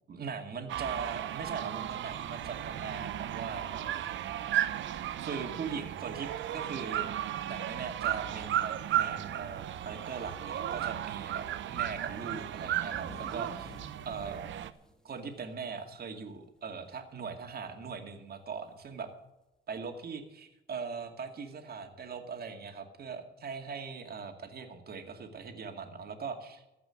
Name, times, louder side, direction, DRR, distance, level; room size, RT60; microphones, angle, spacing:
voice 1, 0.1-4.2 5.2-7.1 7.5-13.7 14.1-14.4 15.0-19.1 19.7-26.6, right 5 dB, 50° right, 5 dB, 2.3 m, -40 dB
sound 1, 0.7-14.7, right 11 dB, 70° right, 0.9 m, -35 dB
sound 2, 12.6-16.4 16.7-16.9 17.2-17.7 18.8-18.9 19.9-20.0, left 1 dB, 5° left, 1.7 m, -53 dB
14.5 x 6.1 x 9.6 m, 0.93 s
cardioid pair, 90°, 20 cm